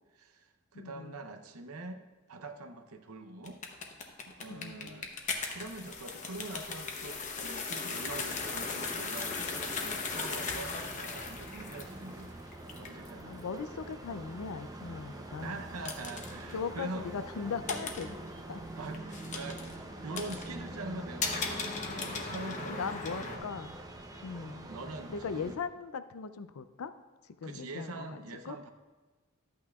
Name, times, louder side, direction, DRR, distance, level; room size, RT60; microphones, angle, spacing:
voice 1, 0.1-2.0 2.3-3.6 4.3-5.1 5.5-12.3 12.7-13.4 15.4-17.1 18.8-23.4 24.7-25.6 27.4-28.7, right 2 dB, 90° right, 6 dB, 0.7 m, -44 dB
voice 2, 0.7-1.2 4.4-5.0 13.2-15.6 16.5-18.2 18.5-18.6 22.6-23.7 24.2-24.7 25.1-26.9 27.4-28.1 28.4-28.6, left 5 dB, 90° left, 12 dB, 0.5 m, -39 dB
sound 1, 3.4-23.4, left 4 dB, 35° left, 0.9 m, -39 dB
sound 2, 7.9-25.6, right 2 dB, 15° right, 0.7 m, -45 dB
12.0 x 8.5 x 2.4 m, 1.3 s
head